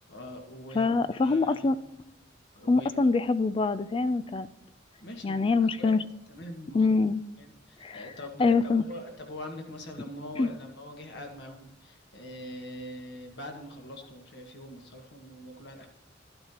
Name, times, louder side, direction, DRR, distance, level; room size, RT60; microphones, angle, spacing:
voice 1, 0.1-1.7 2.5-3.1 5.0-6.0 6.3-6.9 7.4-15.9, left 1 dB, 60° left, 3 dB, 1.7 m, -43 dB
voice 2, 0.7-1.8 2.7-4.5 5.2-6.0 6.7-7.2 7.8-8.0 8.4-8.8 10.4-10.5, left 3 dB, 25° left, 15 dB, 0.3 m, -24 dB
12.5 x 8.6 x 2.9 m, 0.88 s
head